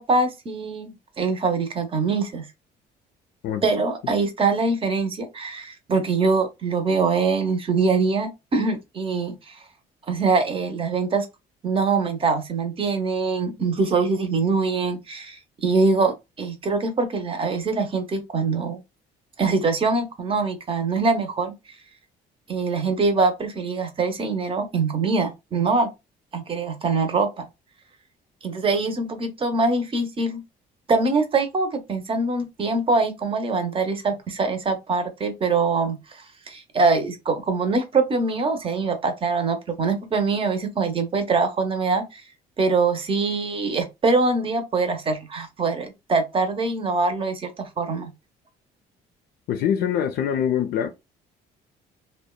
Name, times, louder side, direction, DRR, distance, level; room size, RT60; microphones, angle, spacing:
voice 1, 0.0-2.4 3.6-9.5 10.1-11.3 11.6-18.8 19.4-21.5 22.5-25.9 26.3-27.5 28.4-30.4 30.9-36.0 36.5-42.2 42.6-48.1, right 4 dB, 35° right, 0.7 m, -23 dB
voice 2, 49.5-50.9, left 9 dB, 65° left, 0.4 m, -24 dB
2.7 x 2.2 x 2.2 m
cardioid pair, 110°, 17 cm